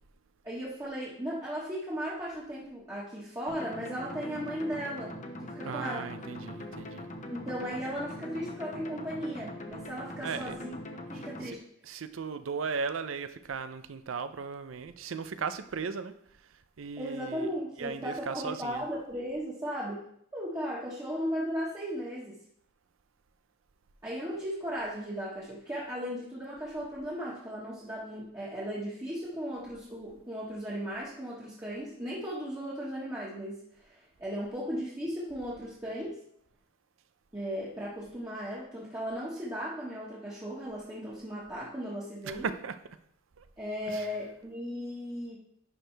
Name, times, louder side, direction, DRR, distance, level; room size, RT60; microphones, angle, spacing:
voice 1, 0.4-5.1 5.4-6.1 7.3-10.8 11.1-11.6 17.0-20.1 20.3-22.4 24.0-36.2 37.3-42.5 43.6-45.4, equal, 15° right, -8 dB, 1.4 m, -36 dB
sound 1, 3.5-11.5, left 1 dB, 40° left, 0.8 m, -42 dB
voice 2, 5.6-7.1 10.2-10.6 11.1-11.6 11.8-17.5 17.8-18.9 42.2-42.8 43.4-43.5 43.9-44.1, right 5 dB, 80° right, 11 dB, 0.5 m, -37 dB
11.0 x 4.5 x 3.4 m, 0.68 s
head